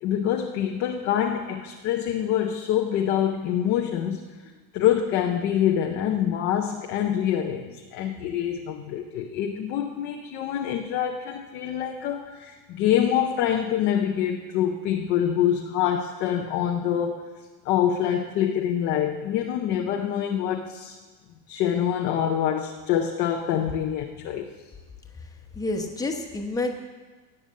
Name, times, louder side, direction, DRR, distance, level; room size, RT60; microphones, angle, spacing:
voice 1, 0.0-4.3 4.7-17.2 17.6-21.0 21.5-24.5, left 10 dB, 25° left, 2 dB, 0.4 m, -25 dB
voice 2, 25.5-26.7, left 2 dB, 5° left, 3 dB, 1.0 m, -28 dB
18.0 x 6.7 x 7.4 m, 1.3 s
supercardioid pair, 160°, 49 cm